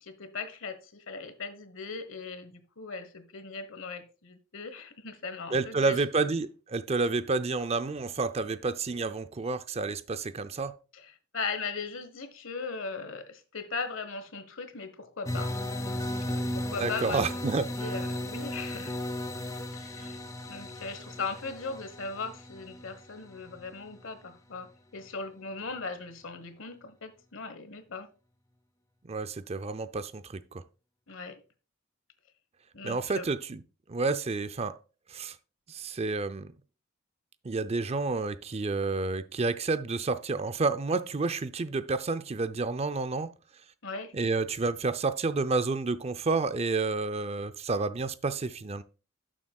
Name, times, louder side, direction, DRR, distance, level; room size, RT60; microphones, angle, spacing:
voice 1, 0.0-6.3 10.9-15.5 15.8-17.4 17.8-18.9 19.7-20.2 20.5-28.1 31.1-31.4 32.7-33.3 43.8-44.1, left 4 dB, 85° left, 1.3 m, -39 dB
voice 2, 5.5-10.7 16.8-17.6 29.0-30.6 32.8-33.6 33.9-34.7 35.1-35.4 35.7-36.5 37.4-43.3 44.1-48.8, right 3 dB, 30° right, 0.5 m, -30 dB
sound 1, 15.2-24.0, left 1 dB, 15° left, 0.6 m, -36 dB
11.5 x 7.4 x 2.3 m
head